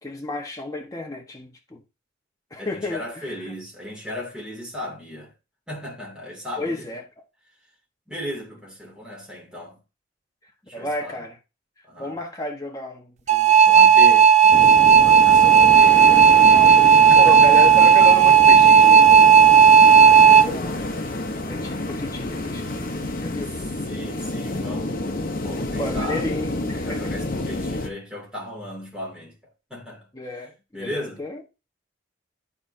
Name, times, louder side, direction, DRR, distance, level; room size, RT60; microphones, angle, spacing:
voice 1, 0.0-1.8 2.5-3.5 6.6-7.0 10.7-11.4 12.0-14.0 16.5-19.3 20.2-20.9 21.5-23.5 25.8-27.1 30.1-30.5 30.8-31.4, left 1 dB, 20° left, 1.2 m, -32 dB
voice 2, 2.6-5.3 5.7-6.9 8.1-9.8 10.6-11.2 11.8-12.2 13.6-16.1 17.1-17.8 23.9-25.1 25.4-29.4 29.7-30.1 30.7-31.2, left 1 dB, 5° right, 2.6 m, -36 dB
sound 1, 13.3-20.5, right 7 dB, 40° right, 0.5 m, -12 dB
sound 2, 14.5-27.9, left 1 dB, 50° left, 0.9 m, -29 dB
12.5 x 4.4 x 2.7 m
head